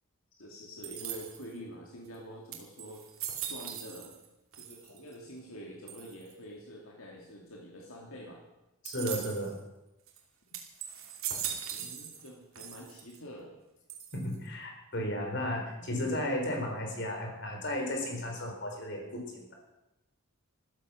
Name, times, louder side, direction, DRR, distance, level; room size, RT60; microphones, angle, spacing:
voice 1, 0.3-3.2 3.5-4.1 4.5-8.4 11.7-13.6 15.8-15.9, equal, 75° left, -1 dB, 2.4 m, -47 dB
sound 1, 0.8-1.6 2.1-2.2 2.5-4.3 4.5-5.1 5.9-6.3 8.9-9.5 10.1-10.2 10.5-12.3 12.6-13.2 13.9-14.5, right 9 dB, 75° right, 2.6 m, -40 dB
voice 2, 8.8-9.5 14.1-19.5, left 1 dB, 55° left, 2 dB, 4.2 m, -34 dB
14.5 x 13.0 x 6.3 m, 0.95 s
head